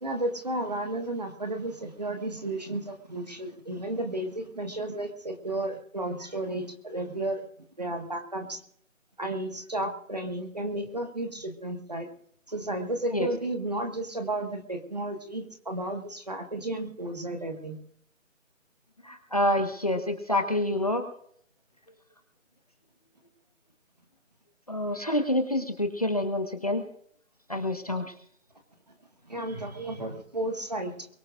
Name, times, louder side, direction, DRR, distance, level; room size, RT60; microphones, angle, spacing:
voice 1, 0.0-7.5 7.8-8.6 9.2-12.1 12.5-17.8 29.2-31.1, right 1 dB, 30° right, 4 dB, 1.8 m, -33 dB
voice 2, 19.0-21.0 24.7-26.8 27.5-28.0, left 1 dB, 30° left, 5 dB, 1.4 m, -27 dB
23.0 x 20.0 x 2.6 m, 0.65 s
figure-of-eight pair, 180°, 40 cm